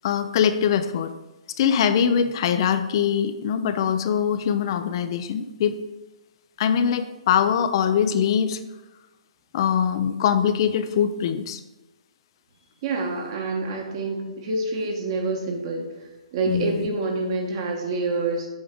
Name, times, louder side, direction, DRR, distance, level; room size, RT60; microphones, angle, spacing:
voice 1, 0.0-1.1 1.6-5.8 6.6-8.6 9.5-11.6 16.5-16.9, left 8 dB, 45° left, 10 dB, 0.5 m, -22 dB
voice 2, 12.8-15.9 16.3-18.5, right 3 dB, 45° right, 0 dB, 1.3 m, -27 dB
7.8 x 3.6 x 5.1 m, 1.1 s
hypercardioid pair, 150°, 4 cm